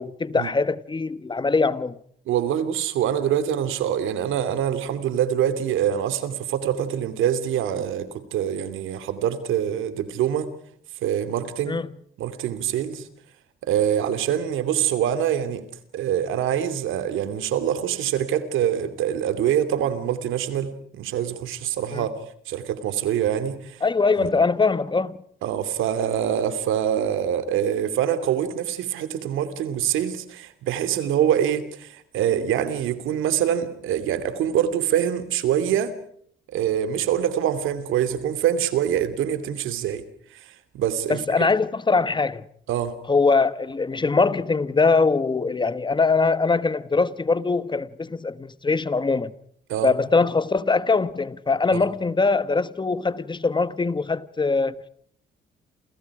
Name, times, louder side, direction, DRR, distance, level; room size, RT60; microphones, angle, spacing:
voice 1, 0.0-2.0 11.7-11.9 21.9-22.0 23.8-25.2 41.1-42.4 43.1-49.3 49.8-54.7, left 4 dB, 25° left, 1.4 m, -22 dB
voice 2, 2.3-10.5 11.0-11.8 12.2-13.1 13.6-15.6 15.9-22.1 22.5-23.8 24.2-24.3 25.4-35.9 36.5-40.0 40.3-41.2 42.7-42.9 49.7-49.9 51.7-51.8, right 10 dB, 90° right, 2.9 m, -25 dB
29.0 x 29.0 x 4.9 m
cardioid pair, 90°, 20 cm